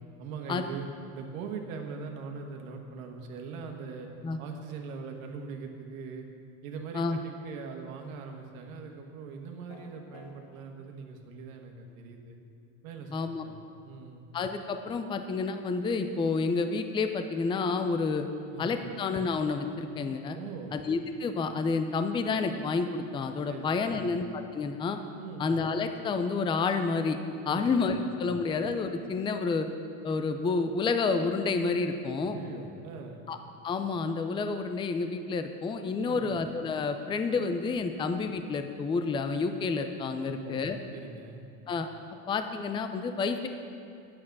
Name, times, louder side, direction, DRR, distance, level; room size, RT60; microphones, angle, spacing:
voice 1, 0.2-0.9 1.1-4.1 4.4-6.3 6.6-12.4 12.8-13.6 13.8-14.3 18.5-18.9 20.3-20.8 23.5-24.1 25.2-25.5 27.4-28.0 32.2-33.2 36.0-36.3 40.2-41.4, right 5 dB, 85° right, 3 dB, 1.6 m, -41 dB
sound 1, 9.7-10.4, left 4 dB, 45° left, 1.7 m, -49 dB
voice 2, 13.1-13.4 14.3-18.3 18.6-20.4 20.7-25.0 25.4-27.2 27.5-29.7 30.0-32.4 33.3-33.4 33.6-40.8 41.7-41.9 42.3-43.5, left 4 dB, 15° left, 8 dB, 0.4 m, -29 dB
9.4 x 8.7 x 6.0 m, 2.6 s
supercardioid pair, 125°, 40 cm